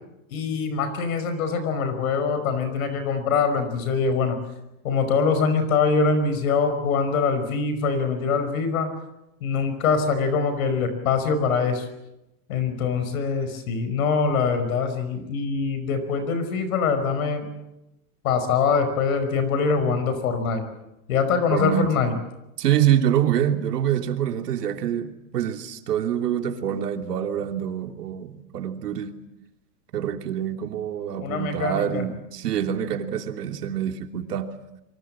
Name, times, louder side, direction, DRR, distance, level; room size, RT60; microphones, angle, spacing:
voice 1, 0.3-4.4 4.8-8.9 9.4-11.9 12.5-17.5 18.2-20.6 21.1-22.2 31.2-32.0, left 5 dB, 60° left, 10 dB, 5.3 m, -23 dB
voice 2, 21.5-21.9 22.6-29.2 29.9-34.5, right 10 dB, 90° right, 5 dB, 3.2 m, -25 dB
28.0 x 24.0 x 7.7 m, 0.92 s
supercardioid pair, 175°, 46 cm